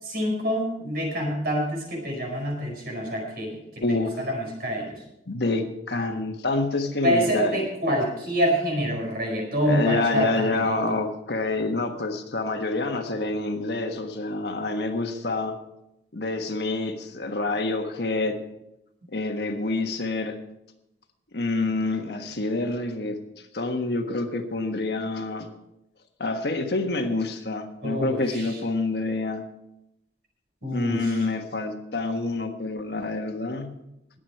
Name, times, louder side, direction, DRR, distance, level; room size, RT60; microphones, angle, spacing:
voice 1, 0.0-5.0 7.0-11.0 27.8-28.6 30.6-31.3, equal, 55° right, 1 dB, 4.8 m, -27 dB
voice 2, 3.8-4.1 5.3-7.6 7.9-8.0 9.7-15.6 16.1-18.4 19.1-20.4 21.3-23.2 23.5-25.5 26.2-29.5 30.7-33.8, left 2 dB, 65° left, 5 dB, 1.4 m, -27 dB
20.5 x 8.0 x 4.6 m, 0.85 s
head